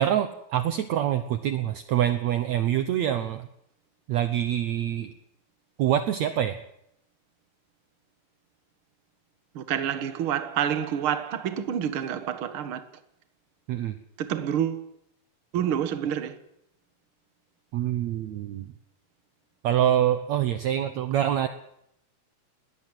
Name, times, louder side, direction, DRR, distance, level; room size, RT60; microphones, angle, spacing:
voice 1, 0.0-3.5 4.1-5.1 5.8-6.6 13.7-14.0 17.7-18.7 19.6-21.5, right 11 dB, 65° right, 2.0 m, -25 dB
voice 2, 9.6-12.8 14.2-14.9 15.5-16.4, right 9 dB, 50° right, 1.9 m, -28 dB
21.0 x 18.5 x 7.7 m
omnidirectional pair, 3.9 m